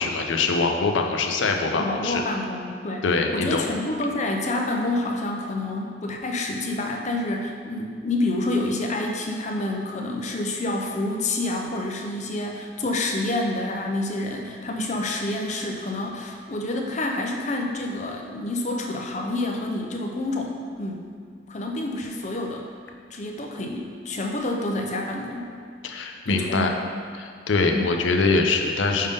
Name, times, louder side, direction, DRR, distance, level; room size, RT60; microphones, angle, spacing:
voice 1, 0.0-2.2 3.0-3.7 25.8-26.7 27.2-29.1, left 3 dB, 85° left, 3 dB, 0.6 m, -23 dB
voice 2, 1.7-3.0 3.3-21.1 21.5-22.7 23.1-25.5 26.3-26.8 27.7-27.9, left 2 dB, 40° left, 1 dB, 0.6 m, -28 dB
5.4 x 3.6 x 5.1 m, 2.1 s
head